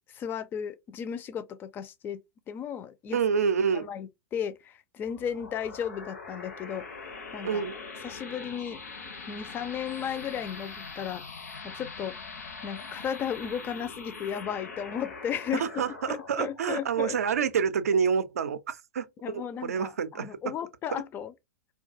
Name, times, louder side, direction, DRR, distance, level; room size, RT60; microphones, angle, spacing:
voice 1, 0.1-2.2 2.5-3.2 3.7-6.9 7.3-7.6 8.0-8.8 9.3-11.2 11.6-12.2 12.6-15.7 16.1-17.2 19.2-21.3, left 8 dB, 25° left, 0.4 m, -35 dB
voice 2, 3.1-3.9 7.4-7.7 15.5-20.4, right 6 dB, 75° right, 0.4 m, -28 dB
sound 1, 5.0-18.2, left 4 dB, 75° left, 0.7 m, -43 dB
2.3 x 2.2 x 2.5 m
figure-of-eight pair, 105°, 8 cm